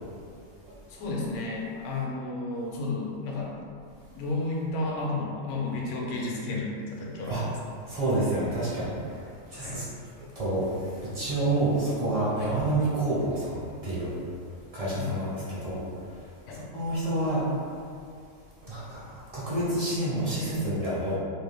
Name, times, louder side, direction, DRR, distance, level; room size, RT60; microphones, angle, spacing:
voice 1, 0.9-3.5 4.1-7.5 9.6-9.8 12.4-12.5 15.0-15.1 16.5-16.6, left 2 dB, 70° left, -3 dB, 0.9 m, -32 dB
voice 2, 7.9-8.9 9.5-9.8 10.4-10.7 11.1-13.6 13.8-14.1 14.7-15.8 16.7-17.4 18.7-19.0 19.3-21.2, right 1 dB, 40° right, -9 dB, 0.6 m, -28 dB
2.6 x 2.2 x 3.3 m, 2.4 s
omnidirectional pair, 1.4 m